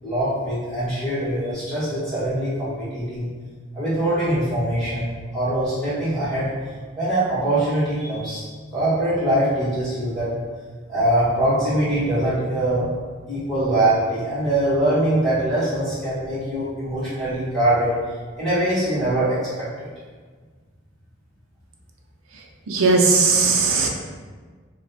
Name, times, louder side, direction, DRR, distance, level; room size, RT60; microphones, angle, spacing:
voice 1, 0.0-3.3 3.7-6.5 6.9-8.4 8.7-10.3 10.9-12.9 13.3-17.9 18.4-19.4 19.8-19.9, right 1 dB, ahead, -14 dB, 1.4 m, -22 dB
voice 2, 22.3-23.9, right 4 dB, 90° right, 1 dB, 0.5 m, -18 dB
3.0 x 2.2 x 3.9 m, 1.5 s
head